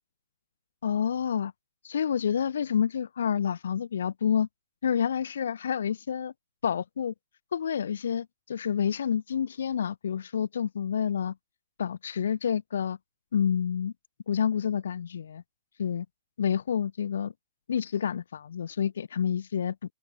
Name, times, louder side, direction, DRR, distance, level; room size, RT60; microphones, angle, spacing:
voice 1, 0.8-1.5 1.8-4.5 4.8-6.3 6.6-7.1 7.5-11.3 11.8-13.0 13.3-13.9 14.3-15.4 15.8-16.1 16.4-17.3 17.7-19.8, left 8 dB, 80° left, 2.9 m, -28 dB
open air
hypercardioid pair, 175°, 0 cm